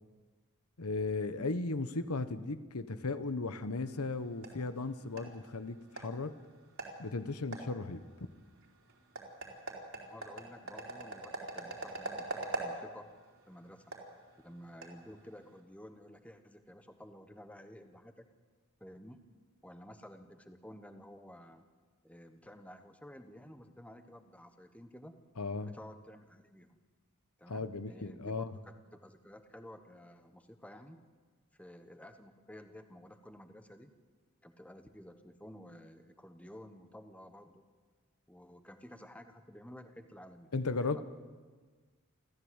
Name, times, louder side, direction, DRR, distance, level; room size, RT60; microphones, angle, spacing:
voice 1, 0.8-6.3 7.0-8.0 25.4-25.7 27.5-28.5 40.5-41.0, left 3 dB, 85° left, 12 dB, 1.1 m, -36 dB
sound 1, 3.8-15.6, right 2 dB, 65° right, 3.9 m, -45 dB
voice 2, 9.9-13.1 13.5-13.9 14.4-18.3 18.8-19.2 19.6-21.7 22.0-25.1 25.6-26.8 27.4-31.0 31.6-33.9 34.4-37.6 38.3-41.0, equal, 5° left, 7 dB, 1.2 m, -52 dB
29.0 x 14.0 x 8.1 m, 1.4 s
head